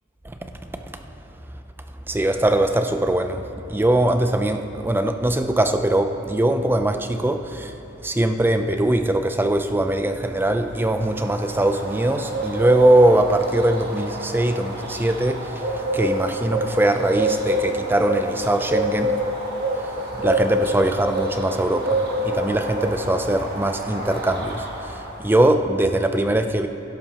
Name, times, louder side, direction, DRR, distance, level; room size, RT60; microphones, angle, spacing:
voice 1, 2.1-7.7 8.0-19.2 20.1-26.7, right 1 dB, 10° right, 7 dB, 0.4 m, -21 dB
sound 1, 10.7-25.3, right 1 dB, 50° right, 1.7 m, -28 dB
16.5 x 12.0 x 2.9 m, 2.9 s
head